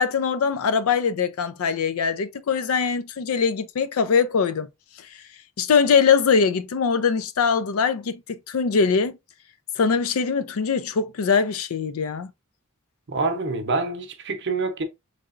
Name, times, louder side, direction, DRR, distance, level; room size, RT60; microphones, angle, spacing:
voice 1, 0.0-4.7 5.6-9.1 9.8-12.3, left 6 dB, 70° left, 0.4 m, -22 dB
voice 2, 13.1-14.8, right 3 dB, 55° right, 0.8 m, -26 dB
3.8 x 3.3 x 2.4 m
head